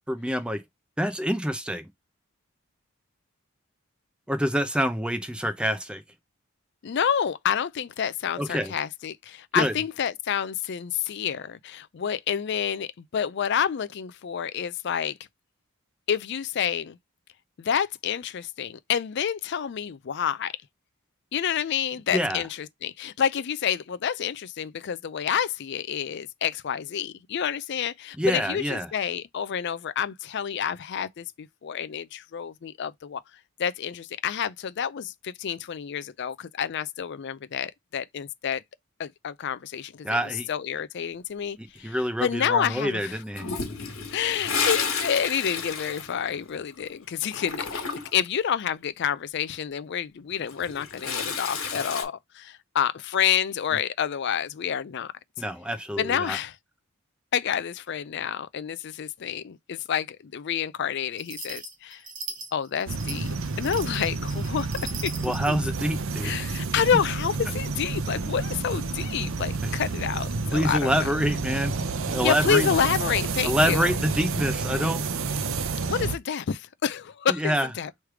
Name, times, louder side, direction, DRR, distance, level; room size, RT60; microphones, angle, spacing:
voice 1, 0.1-0.6 1.0-1.9 4.3-6.0 8.4-8.7 9.5-9.7 22.1-22.4 28.2-28.9 40.0-40.5 41.6-43.5 55.4-56.4 65.2-66.3 69.6-69.7 70.5-71.7 72.1-72.7 73.4-75.1 77.3-77.7, equal, 5° right, 0.6 m, -26 dB
voice 2, 6.8-15.2 16.1-17.0 17.6-20.5 21.3-33.2 33.6-38.6 39.0-40.2 40.5-43.2 44.1-55.1 56.0-56.6 57.3-62.0 62.5-64.7 65.0-65.1 65.5-65.6 66.2-71.1 72.2-74.0 75.8-77.9, left 8 dB, 55° left, 0.4 m, -29 dB
Toilet flush, 43.3-46.8 47.1-48.3 50.3-52.0, left 5 dB, 85° left, 1.7 m, -31 dB
sound 1, 61.2-65.6, right 4 dB, 40° right, 0.9 m, -39 dB
sound 2, 62.9-76.2, right 4 dB, 65° right, 0.5 m, -30 dB
3.2 x 3.1 x 4.8 m
head